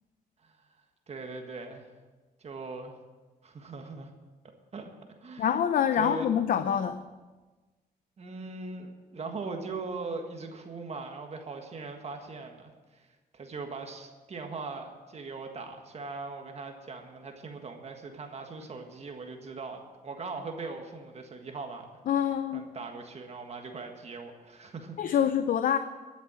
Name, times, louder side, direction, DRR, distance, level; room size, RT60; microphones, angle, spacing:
voice 1, 1.1-1.9 2.4-2.9 3.4-4.1 4.7-4.9 5.2-5.5 6.0-6.3 8.2-13.1 13.3-21.9 22.5-25.2, right 4 dB, 45° right, 4 dB, 1.6 m, -40 dB
voice 2, 5.4-7.0 22.1-22.7 25.0-25.8, left 9 dB, 65° left, 10 dB, 0.6 m, -26 dB
12.0 x 7.2 x 8.7 m, 1.3 s
cardioid pair, 105°, 15 cm